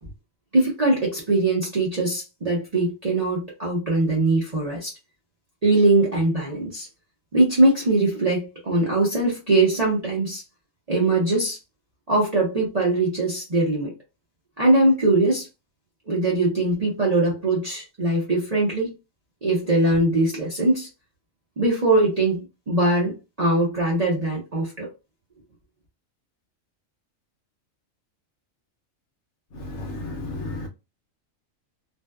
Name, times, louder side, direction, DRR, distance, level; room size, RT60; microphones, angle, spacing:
voice 1, 0.5-4.9 5.6-6.9 7.3-10.4 10.9-11.6 12.1-13.9 14.6-15.5 16.1-19.0 19.4-20.9 21.6-24.9, right 2 dB, 40° right, 0.6 m, -21 dB
voice 2, 29.5-30.7, left 2 dB, 65° left, 0.9 m, -33 dB
2.6 x 2.1 x 2.2 m
omnidirectional pair, 1.4 m